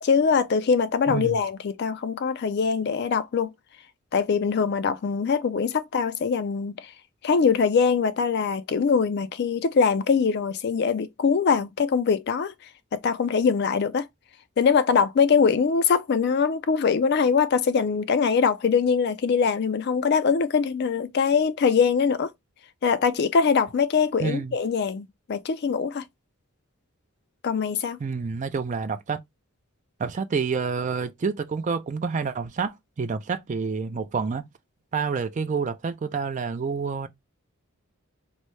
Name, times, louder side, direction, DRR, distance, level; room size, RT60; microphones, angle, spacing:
voice 1, 0.0-3.5 4.1-6.9 7.2-12.5 12.9-14.1 14.6-22.3 22.8-26.0 27.4-28.0, left 5 dB, 50° left, 0.3 m, -23 dB
voice 2, 1.1-1.4 24.2-24.6 28.0-29.2 30.0-34.4 34.9-37.1, right 5 dB, 35° right, 0.3 m, -28 dB
3.1 x 2.7 x 3.1 m
head